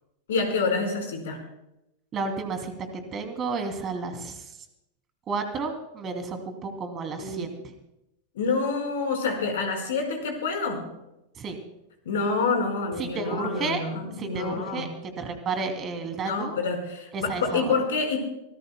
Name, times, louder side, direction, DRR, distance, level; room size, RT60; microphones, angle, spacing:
voice 1, 0.3-1.4 7.2-7.5 8.3-10.9 12.0-14.9 16.2-18.2, left 4 dB, 60° left, 3 dB, 4.8 m, -27 dB
voice 2, 2.1-4.6 5.3-7.7 11.4-11.6 13.0-13.8 14.2-16.6 17.1-17.7, right 4 dB, 25° right, 6 dB, 2.8 m, -32 dB
25.0 x 19.5 x 2.3 m, 0.87 s
figure-of-eight pair, 90°, 0 cm